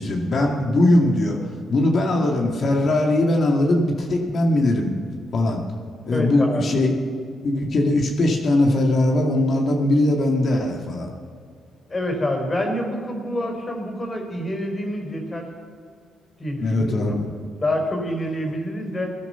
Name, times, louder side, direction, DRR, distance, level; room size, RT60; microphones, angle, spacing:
voice 1, 0.0-1.4 1.7-4.9 5.3-5.6 6.0-6.9 7.4-11.1 16.6-17.2, left 1 dB, 55° left, 1 dB, 2.2 m, -20 dB
voice 2, 6.1-6.7 11.9-15.5 16.4-17.2 17.6-19.2, left 1 dB, 30° left, 1 dB, 4.5 m, -27 dB
16.5 x 11.0 x 5.7 m, 2.2 s
supercardioid pair, 55°, 0 cm